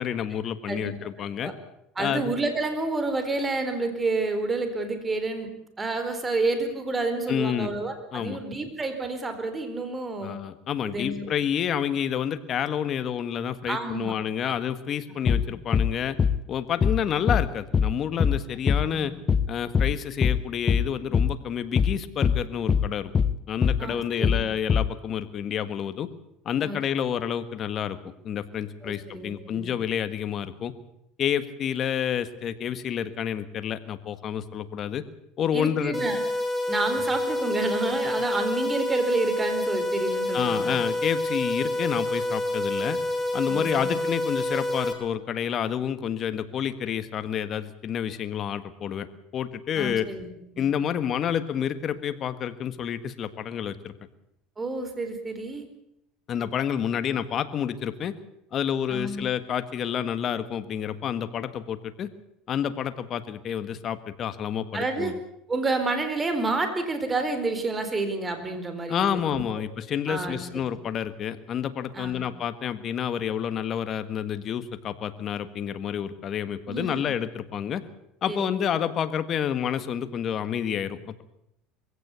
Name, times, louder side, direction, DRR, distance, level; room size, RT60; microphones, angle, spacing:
voice 1, 0.0-1.5 2.0-2.3 7.3-7.7 8.1-8.4 10.2-16.2 16.5-19.1 19.5-23.1 23.5-26.1 26.5-28.0 28.2-30.7 31.2-35.0 35.4-36.1 40.3-43.0 43.3-49.1 49.3-50.1 50.6-53.9 56.3-58.1 58.5-62.1 62.5-65.1 68.9-77.8 78.2-81.2, left 9 dB, 40° left, 11 dB, 1.6 m, -29 dB
voice 2, 2.0-5.5 5.8-10.4 10.8-11.3 13.7-14.1 14.4-14.6 15.3-15.4 18.9-19.1 23.8-24.4 26.6-26.8 28.8-29.7 35.5-36.2 36.7-40.8 43.5-44.0 49.7-50.7 54.6-55.7 58.9-59.3 64.7-65.1 65.5-69.4 70.1-70.5 71.9-72.2 76.7-77.1 78.3-78.6, right 3 dB, 20° right, 8 dB, 4.2 m, -29 dB
sound 1, 15.3-15.5 15.7-15.9 16.2-16.4 16.8-17.0 17.3-17.5 17.7-17.9 18.2-18.4 18.7-18.9 19.3-19.5 19.7-19.9 20.2-20.4 20.7-20.9 21.1-21.3 21.8-22.0 22.2-22.4 22.7-22.9 23.1-23.3 23.6-23.8 24.2-24.4 24.7-24.9, left 6 dB, 25° left, 1.0 m, -22 dB
sound 2, 35.9-44.9, left 1 dB, ahead, 4.0 m, -28 dB
22.0 x 16.5 x 8.3 m, 0.79 s
supercardioid pair, 120°, 0 cm